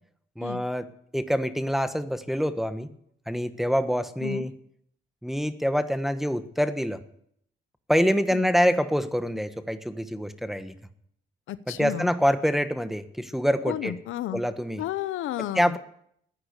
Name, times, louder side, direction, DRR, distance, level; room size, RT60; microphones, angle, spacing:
voice 1, 0.4-0.9 1.1-2.9 3.3-4.5 5.2-7.0 7.9-10.7 11.7-13.9 14.3-14.8 15.5-15.8, equal, ahead, 10 dB, 1.3 m, -25 dB
voice 2, 11.5-12.1 13.7-14.4 14.8-15.8, left 13 dB, 85° left, 15 dB, 0.8 m, -32 dB
15.0 x 9.9 x 8.2 m, 0.70 s
cardioid pair, 90°, 20 cm